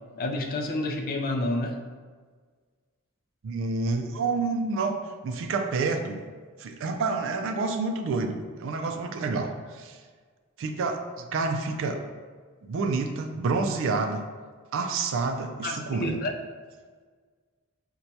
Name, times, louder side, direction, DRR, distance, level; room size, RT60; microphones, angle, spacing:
voice 1, 0.2-1.8 15.6-16.3, left 2 dB, 45° left, 2 dB, 0.4 m, -29 dB
voice 2, 3.4-5.0 5.2-6.2 6.6-10.0 10.6-12.0 12.6-14.2 14.7-16.2, right 3 dB, 65° right, 5 dB, 0.3 m, -28 dB
4.4 x 2.2 x 2.7 m, 1.6 s
head